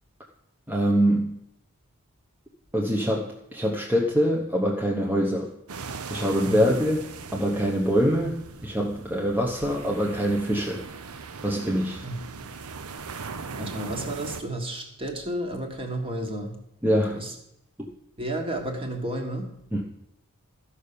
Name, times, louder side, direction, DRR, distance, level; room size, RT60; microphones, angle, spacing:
voice 1, 0.7-1.3 2.7-5.5 6.1-7.0 7.3-10.8 11.4-12.0 16.8-17.2 19.7-19.8, equal, 10° right, -1 dB, 0.9 m, -24 dB
sound 1, 5.7-14.4, right 5 dB, 80° right, 0.8 m, -39 dB
voice 2, 6.4-6.8 12.0-12.5 13.6-16.6 17.1-17.3 18.2-19.5, right 1 dB, 25° right, 3 dB, 1.7 m, -32 dB
13.5 x 5.7 x 6.8 m, 0.82 s
head